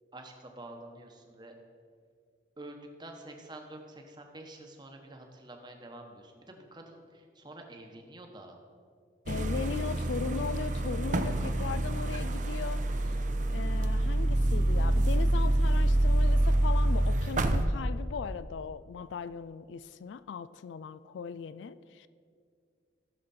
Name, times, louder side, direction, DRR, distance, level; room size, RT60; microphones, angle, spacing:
voice 1, 0.1-1.5 2.6-8.6, right 1 dB, 25° right, 3 dB, 1.1 m, -48 dB
voice 2, 9.3-22.1, left 6 dB, 75° left, 15 dB, 0.3 m, -38 dB
sound 1, 9.3-17.7, right 1 dB, 40° right, 0.6 m, -27 dB
15.0 x 6.7 x 4.2 m, 2.2 s
head